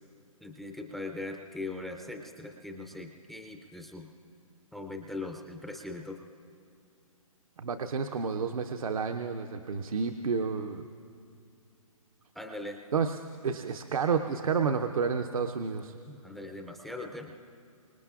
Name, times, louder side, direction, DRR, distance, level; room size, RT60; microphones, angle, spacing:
voice 1, 0.4-4.1 4.7-6.2 12.3-12.8 16.1-17.3, left 2 dB, ahead, 3 dB, 0.4 m, -40 dB
voice 2, 7.6-10.8 12.9-13.2 13.4-15.9, right 5 dB, 75° right, 6 dB, 0.7 m, -30 dB
25.0 x 19.0 x 2.4 m, 2.4 s
hypercardioid pair, 145°, 18 cm